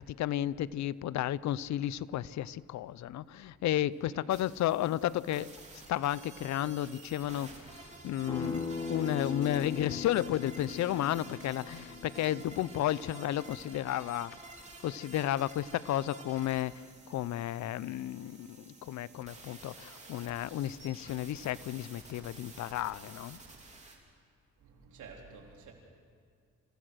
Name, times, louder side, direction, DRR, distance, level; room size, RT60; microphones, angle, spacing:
voice 1, 0.0-5.5 5.9-14.4 14.8-16.8 17.1-23.4, left 12 dB, 65° left, 19 dB, 0.6 m, -33 dB
sound 1, 4.3-24.0, right 2 dB, 25° right, 3.3 m, -51 dB
Acoustic guitar, 8.3-13.5, left 5 dB, 15° left, 5.5 m, -40 dB
voice 2, 8.3-8.8 9.2-11.1 25.0-25.7, right 4 dB, 75° right, 0 dB, 3.9 m, -53 dB
26.5 x 16.0 x 6.3 m, 2.2 s
cardioid pair, 90°, 30 cm